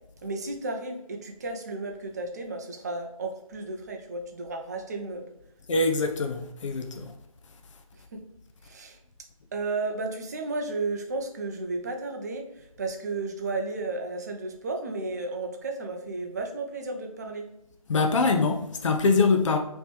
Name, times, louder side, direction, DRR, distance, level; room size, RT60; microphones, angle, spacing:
voice 1, 0.2-5.3 7.9-8.2 8.6-9.0 9.5-17.5, right 3 dB, 30° right, 0.5 m, -33 dB
voice 2, 5.7-7.1 17.9-19.6, left 3 dB, 55° left, 0.6 m, -24 dB
4.9 x 3.1 x 3.3 m
figure-of-eight pair, 155°, 18 cm